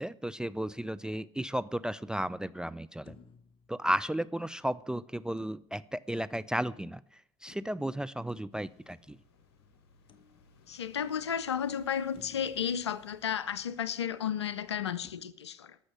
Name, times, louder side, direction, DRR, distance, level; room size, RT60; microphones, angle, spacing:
voice 1, 0.0-3.2 3.7-9.2, right 1 dB, 5° right, 0.4 m, -34 dB
sound 1, 3.1-4.7 5.4-7.0 7.5-9.4 10.1-10.9 11.4-11.5 12.1-13.8 15.0-15.1, left 6 dB, 40° left, 1.0 m, -59 dB
sound 2, 8.5-15.2, left 4 dB, 75° left, 1.5 m, -63 dB
voice 2, 10.7-15.8, left 8 dB, 90° left, 0.5 m, -33 dB
14.0 x 6.3 x 7.5 m
hypercardioid pair, 65°, 14 cm